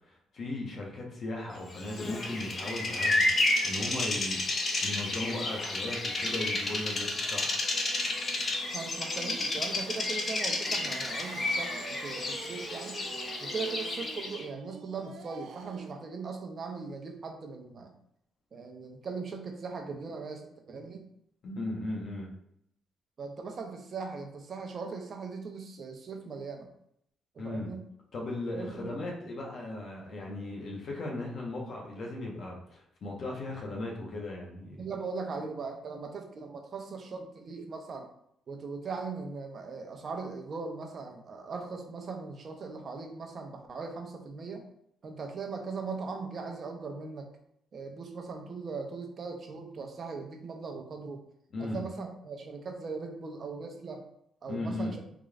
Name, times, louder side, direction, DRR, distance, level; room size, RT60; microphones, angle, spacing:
voice 1, 0.1-7.5 21.4-22.3 27.4-27.7 28.1-34.9 51.5-51.8 54.5-54.9, left 2 dB, 60° left, -2 dB, 1.1 m, -37 dB
Bird vocalization bird call bird song, 1.8-14.4, left 2 dB, 40° left, 0.7 m, -31 dB
voice 2, 8.7-13.0 13.4-17.9 18.5-21.0 23.2-26.7 27.3-27.9 28.6-29.0 34.8-38.1 38.5-44.6 45.0-47.3 47.7-51.2 51.6-54.0 54.4-55.0, right 4 dB, 50° right, 3 dB, 0.7 m, -39 dB
sound 1, 11.1-16.0, right 5 dB, 75° right, 0.4 m, -47 dB
3.8 x 3.1 x 2.4 m, 0.73 s
cardioid pair, 90°, 0 cm